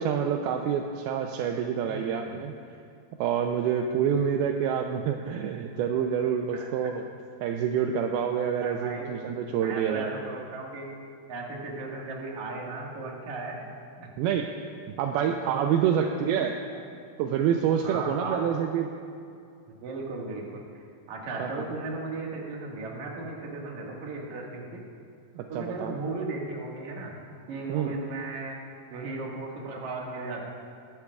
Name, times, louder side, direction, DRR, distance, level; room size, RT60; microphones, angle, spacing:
voice 1, 0.0-2.5 3.2-7.1 7.4-10.1 14.2-14.6 15.0-16.5 17.2-18.9 21.4-21.6 25.4-26.0 27.7-27.9, right 8 dB, 80° right, 4 dB, 2.4 m, -27 dB
voice 2, 1.7-2.4 6.5-6.9 8.6-9.2 9.6-10.9 11.3-13.6 14.0-14.1 15.1-15.2 15.8-16.8 17.8-18.6 19.7-24.8 25.5-27.1 27.5-28.6 28.9-30.4, right 3 dB, 55° right, -2 dB, 2.8 m, -36 dB
23.0 x 11.5 x 2.4 m, 2.4 s
omnidirectional pair, 4.5 m